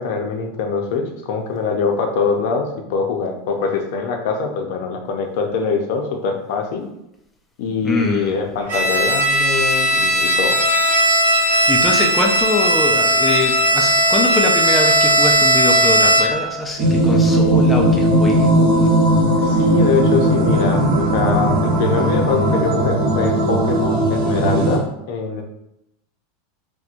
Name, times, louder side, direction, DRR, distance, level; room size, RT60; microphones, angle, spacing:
voice 1, 0.0-6.9 7.6-10.6 19.4-25.4, left 5 dB, 60° left, 3 dB, 0.6 m, -23 dB
voice 2, 7.8-8.3 11.4-19.0, left 2 dB, 10° left, 0 dB, 0.3 m, -23 dB
Bowed string instrument, 8.7-16.5, right 1 dB, 80° right, 1.0 m, -16 dB
sound 1, 16.8-24.8, right 1 dB, 60° right, 1.0 m, -17 dB
4.2 x 2.1 x 2.5 m, 0.84 s
supercardioid pair, 160°, 0 cm